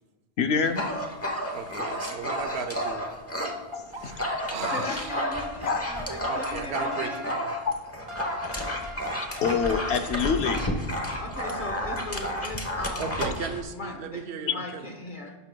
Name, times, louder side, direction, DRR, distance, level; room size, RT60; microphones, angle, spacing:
voice 1, 0.4-0.9 3.7-4.4 4.7-5.0 5.6-5.8 7.7-7.8 8.4-8.9 9.4-10.7 14.4-14.5, left 6 dB, 75° left, 7 dB, 0.9 m, -27 dB
Dog, 0.6-3.6 3.9-13.6, equal, 15° left, 0.9 m, -31 dB
voice 2, 1.5-3.1 4.0-4.2 4.5-5.2 6.3-7.5 13.0-14.9, right 6 dB, 75° right, 7 dB, 0.9 m, -36 dB
sound 1, 3.2-4.4 4.7-10.8, left 2 dB, 30° right, 0.9 m, -42 dB
voice 3, 4.7-7.4 11.2-13.2 13.7-15.3, left 2 dB, 50° left, 2 dB, 1.3 m, -38 dB
16.5 x 6.2 x 2.2 m, 1.3 s
omnidirectional pair, 1.1 m